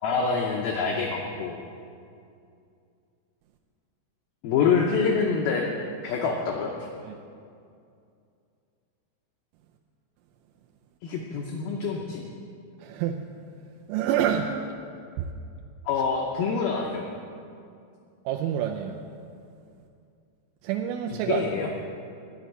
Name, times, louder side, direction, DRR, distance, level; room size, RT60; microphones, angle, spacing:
voice 1, 0.0-1.6 4.4-5.7 6.0-6.7 11.0-12.2 15.9-17.1 21.1-21.7, left 5 dB, 90° left, 0 dB, 2.1 m, -26 dB
voice 2, 12.8-13.2 13.9-14.6 15.2-15.3 18.3-19.0 20.6-21.4, right 9 dB, 85° right, 2 dB, 3.0 m, -27 dB
11.5 x 6.1 x 9.1 m, 2.4 s
omnidirectional pair, 5.5 m